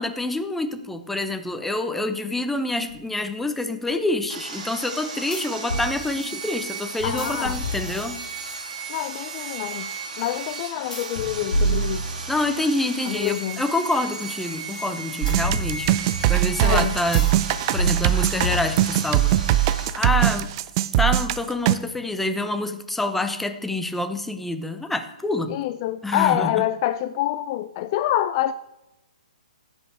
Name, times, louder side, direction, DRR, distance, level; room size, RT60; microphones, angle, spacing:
voice 1, 0.0-8.2 12.3-16.0 16.3-17.3 17.7-20.5 21.0-25.6 26.0-26.5, left 2 dB, 5° left, 0.6 m, -27 dB
sound 1, 2.9-3.0 5.3-5.9 7.0-8.3 10.9-12.6 15.3-16.3 17.1-17.4 17.8-19.1, right 1 dB, 80° left, 2.9 m, -28 dB
Sawing, 4.3-19.9, right 4 dB, 60° right, 2.2 m, -35 dB
voice 2, 7.0-7.6 8.9-9.9 10.2-12.1 13.1-13.6 16.6-17.0 25.5-28.5, left 13 dB, 35° left, 0.3 m, -26 dB
sound 2, 15.2-21.7, right 14 dB, 35° right, 0.4 m, -21 dB
16.0 x 5.4 x 3.4 m
hypercardioid pair, 130°, 4 cm